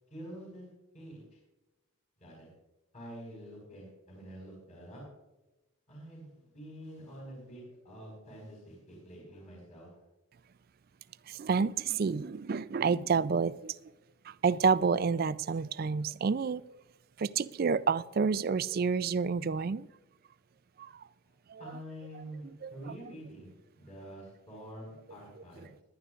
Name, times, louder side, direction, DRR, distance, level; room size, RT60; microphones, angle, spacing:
voice 1, 0.1-0.7 0.9-1.4 2.2-2.5 2.9-5.0 5.9-9.9 21.6-25.8, equal, 35° left, -2 dB, 4.5 m, -47 dB
voice 2, 11.3-13.8 14.2-16.6 17.2-19.9 20.8-21.0 21.5-21.6 22.6-22.7, right 5 dB, 45° right, 17 dB, 0.3 m, -29 dB
19.5 x 11.5 x 2.5 m, 1.0 s
head